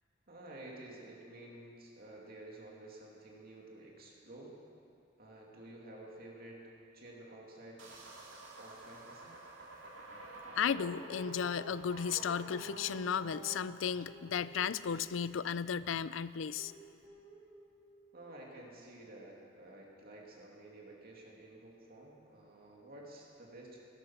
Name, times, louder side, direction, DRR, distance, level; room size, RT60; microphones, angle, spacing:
voice 1, 0.3-4.5 5.2-6.6 6.9-7.8 8.6-9.4 18.1-23.8, right 1 dB, 50° right, -2 dB, 2.6 m, -52 dB
sound 1, 7.8-13.5, right 2 dB, 75° right, 2.7 m, -49 dB
voice 2, 10.6-16.7, left 7 dB, 75° left, 17 dB, 0.4 m, -34 dB
Guitar, 13.2-15.7 16.4-18.3, right 2 dB, 25° right, 2.9 m, -58 dB
16.5 x 13.0 x 5.9 m, 2.5 s
head